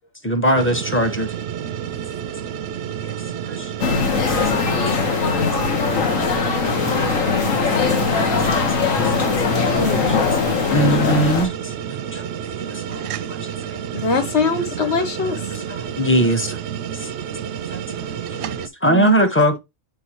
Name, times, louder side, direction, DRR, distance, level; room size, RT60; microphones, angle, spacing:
voice 1, 0.2-1.3 3.0-3.1 3.4-6.5 7.3-7.9 8.3-8.4 8.8-9.4 9.7-13.8 15.5-16.6 16.9-17.1 17.7-19.6, right 1 dB, 10° left, 0.9 m, -24 dB
sound 1, 0.5-18.7, right 9 dB, 65° right, 0.8 m, -30 dB
sound 2, 3.8-11.5, left 5 dB, 85° left, 1.5 m, -20 dB
voice 2, 6.2-8.6 9.2-9.3, left 1 dB, 30° left, 2.4 m, -42 dB
voice 3, 9.7-10.2 13.9-15.4 18.9-19.2, left 4 dB, 60° left, 1.3 m, -22 dB
6.9 x 4.8 x 2.9 m
omnidirectional pair, 1.3 m